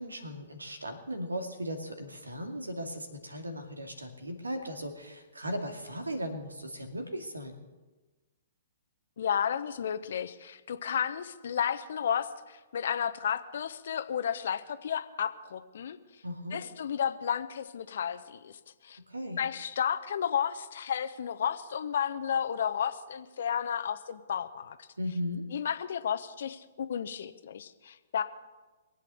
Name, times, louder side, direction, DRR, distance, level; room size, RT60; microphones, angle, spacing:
voice 1, 0.0-7.6 16.2-16.6 19.1-19.4 25.0-25.4, equal, 85° right, 5 dB, 2.4 m, -37 dB
voice 2, 9.2-16.0 16.5-19.0 19.4-24.9 25.5-28.2, left 8 dB, 60° left, 11 dB, 1.1 m, -32 dB
22.5 x 8.3 x 7.0 m, 1.2 s
figure-of-eight pair, 115°, 0 cm